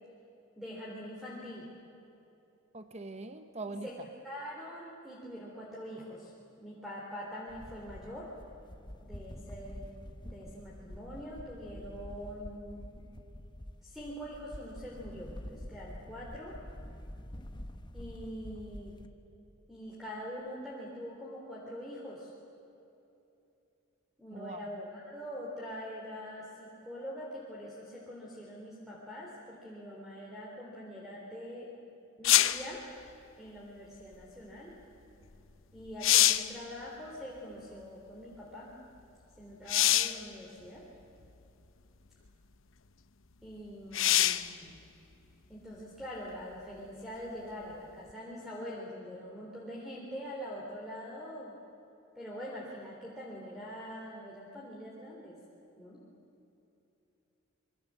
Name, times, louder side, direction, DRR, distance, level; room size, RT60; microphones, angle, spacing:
voice 1, 0.6-1.7 3.6-6.3 6.6-8.3 9.0-9.9 10.2-13.0 13.8-16.6 17.9-19.0 19.7-22.3 24.2-31.7 32.2-32.8 33.4-34.8 35.7-38.8 39.4-40.9 43.4-44.8 45.5-51.6 52.2-55.4 55.8-56.0, equal, ahead, -5 dB, 3.6 m, -44 dB
voice 2, 2.7-3.9 24.3-24.6, right 3 dB, 30° right, 8 dB, 0.9 m, -42 dB
sound 1, 7.5-19.1, equal, 20° left, 1.1 m, -47 dB
sound 2, 32.2-32.7 35.3-35.4 35.8-36.6 39.7-40.2 41.2-41.3 43.9-44.5 48.1-48.2, left 13 dB, 70° left, 0.8 m, -24 dB
27.0 x 23.5 x 7.6 m, 2.9 s
head